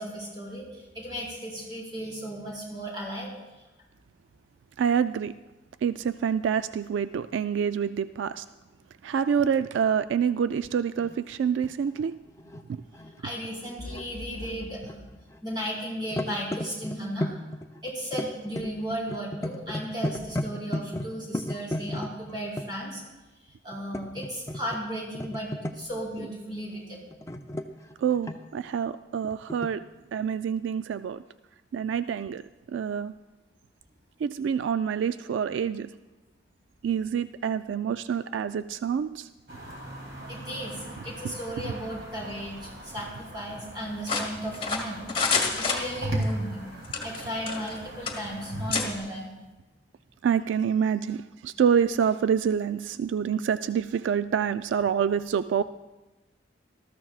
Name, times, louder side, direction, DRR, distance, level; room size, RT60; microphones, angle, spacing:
voice 1, 0.0-3.3 13.2-15.0 15.4-17.3 17.8-23.0 23.6-27.1 39.8-39.9 40.3-45.0 45.4-46.7 47.0-49.3, equal, 25° right, -4 dB, 4.3 m, -35 dB
voice 2, 4.8-5.4 5.8-8.4 9.0-12.2 12.7-12.8 28.0-29.9 30.1-31.2 31.7-32.4 32.7-33.1 34.2-35.9 36.8-39.3 50.2-55.6, right 7 dB, 85° right, 12 dB, 0.3 m, -27 dB
sound 1, 11.0-11.2 11.7-14.1 14.4-15.6 15.8-22.7 23.7-24.8 25.1-26.0 27.1-28.6 29.5-29.7, left 1 dB, 15° left, 0.5 m, -34 dB
sound 2, 39.5-49.0, right 1 dB, 65° right, 2.9 m, -38 dB
sound 3, 44.1-46.3 46.8-47.8 48.1-48.2 48.7-48.9, left 4 dB, 30° left, 1.6 m, -28 dB
19.5 x 13.5 x 2.4 m, 1.1 s
head